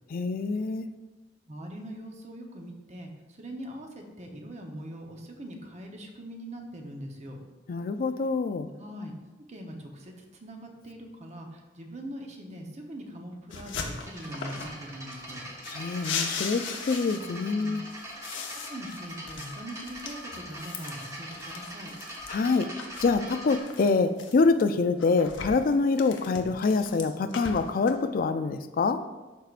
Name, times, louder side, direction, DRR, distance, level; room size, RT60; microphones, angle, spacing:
voice 1, 0.1-0.9 7.7-8.7 15.7-17.8 22.3-22.7 23.0-29.0, left 4 dB, 50° left, 10 dB, 0.4 m, -25 dB
voice 2, 1.5-7.4 8.8-9.1 9.5-15.5 17.1-17.2 17.5-17.8 18.7-21.9, equal, 40° right, 2 dB, 0.9 m, -42 dB
sound 1, 13.5-14.8 15.1-17.5 17.8-22.4 22.8-24.6 25.0-27.9, left 5 dB, 80° left, 0.8 m, -39 dB
sound 2, 14.0-23.6, right 1 dB, 15° right, 1.1 m, -42 dB
11.5 x 4.6 x 2.5 m, 1.2 s
head